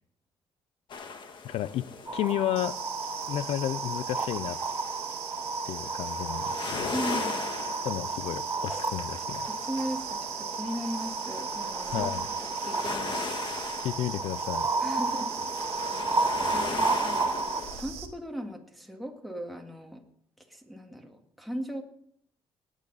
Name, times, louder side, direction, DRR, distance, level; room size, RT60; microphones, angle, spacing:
sound 1, 0.9-17.8, left 4 dB, 50° left, 1.7 m, -40 dB
voice 1, 1.4-1.9 2.1-2.7 3.3-4.6 5.7-7.0 7.8-9.5 11.9-12.3 13.8-14.7, left 12 dB, 80° left, 18 dB, 0.6 m, -32 dB
sound 2, 2.1-17.6, right 3 dB, 25° right, 1.6 m, -32 dB
sound 3, 2.6-18.1, right 9 dB, 85° right, 1.8 m, -40 dB
voice 2, 6.9-7.5 9.5-12.1 12.6-13.8 14.8-15.3 16.4-17.4 17.8-20.0 20.4-21.8, equal, ahead, 2 dB, 1.9 m, -38 dB
19.0 x 9.2 x 4.1 m, 0.69 s
cardioid pair, 110°, 10 cm